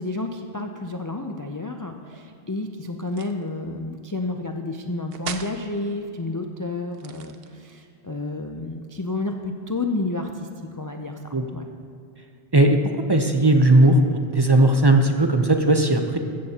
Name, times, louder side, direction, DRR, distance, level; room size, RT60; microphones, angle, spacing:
voice 1, 0.0-11.6, left 2 dB, 35° left, 4 dB, 0.3 m, -30 dB
sound 1, 3.0-3.5 5.1-5.6 6.9-7.8, right 7 dB, 60° right, 0.9 m, -36 dB
voice 2, 13.1-16.2, right 1 dB, 25° right, 4 dB, 0.6 m, -17 dB
15.0 x 13.5 x 2.9 m, 2.4 s
omnidirectional pair, 1.2 m